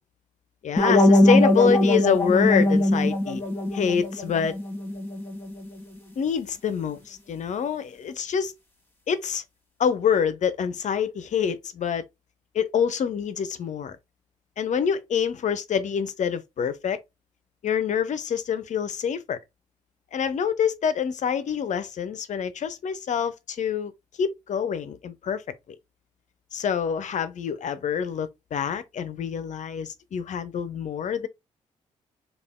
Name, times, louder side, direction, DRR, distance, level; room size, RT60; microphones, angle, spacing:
voice 1, 0.6-3.4 3.7-4.6 6.2-8.5 9.1-9.4 9.8-12.0 12.5-14.0 14.6-17.0 17.6-19.4 20.1-23.9 24.2-25.4 26.5-31.3, left 7 dB, 55° left, 0.6 m, -26 dB
sound 1, 0.8-5.7, left 1 dB, 15° left, 1.6 m, -21 dB
3.4 x 2.4 x 3.6 m
hypercardioid pair, 45°, 15 cm